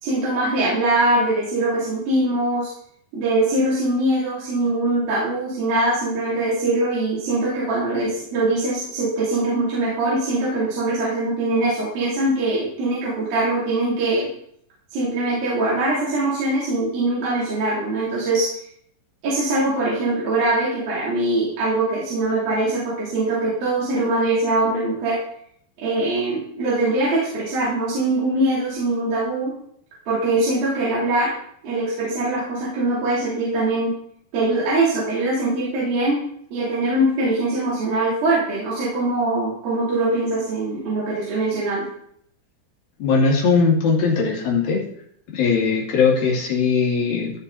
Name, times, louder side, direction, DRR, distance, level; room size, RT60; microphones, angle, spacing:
voice 1, 0.0-2.7 3.1-14.3 14.9-18.5 19.2-25.2 25.8-29.5 30.1-31.3 31.6-33.9 34.3-36.2 36.5-41.9, right 2 dB, 60° right, -8 dB, 5.0 m, -22 dB
voice 2, 43.0-44.8 45.3-47.3, left 5 dB, 65° left, -2 dB, 4.0 m, -19 dB
15.5 x 6.4 x 4.1 m, 0.66 s
omnidirectional pair, 4.7 m